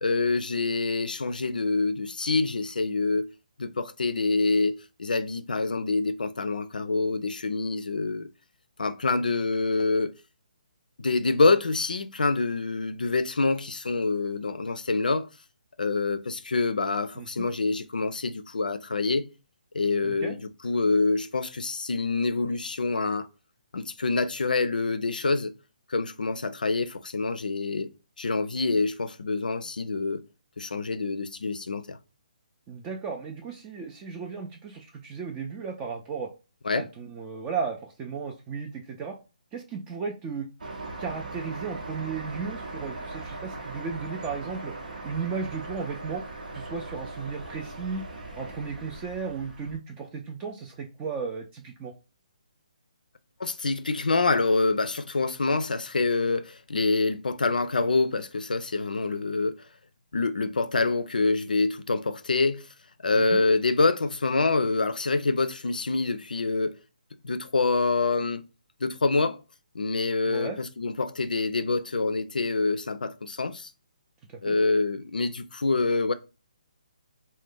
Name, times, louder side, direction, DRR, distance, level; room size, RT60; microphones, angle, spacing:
voice 1, 0.0-3.3 3.6-8.3 8.8-10.1 11.0-15.3 15.8-19.3 19.7-23.3 23.7-25.5 25.9-27.9 28.2-30.2 30.6-32.0 36.7-36.8 53.4-59.7 60.1-62.7 63.0-66.8 67.2-68.4 68.8-69.4 69.7-73.7 74.4-76.1, left 3 dB, 85° left, 0.4 m, -26 dB
voice 2, 17.2-17.5 20.0-20.4 32.7-36.3 36.7-39.2 39.5-40.5 41.0-44.7 45.0-46.2 46.5-48.1 48.4-51.9 63.1-63.4 70.3-70.6 74.3-74.6, right 5 dB, 20° right, 0.3 m, -35 dB
sound 1, 40.6-49.8, right 2 dB, 75° right, 0.9 m, -39 dB
2.4 x 2.1 x 3.7 m
figure-of-eight pair, 145°, 4 cm